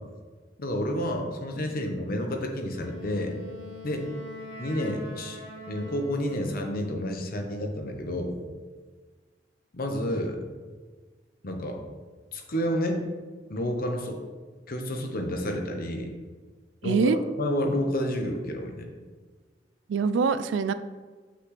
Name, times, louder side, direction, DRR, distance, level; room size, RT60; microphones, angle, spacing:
voice 1, 0.6-3.4 3.8-4.1 4.6-5.4 5.7-8.4 9.7-10.4 11.4-11.8 12.3-13.0 13.5-14.2 14.7-16.1 16.8-18.9, equal, 50° left, 3 dB, 0.9 m, -30 dB
Wind instrument woodwind instrument, 2.7-6.9, left 1 dB, 85° left, 1.7 m, -43 dB
voice 2, 16.8-17.2 19.9-20.7, right 5 dB, 75° right, 13 dB, 0.3 m, -24 dB
5.9 x 5.8 x 3.2 m, 1.4 s
head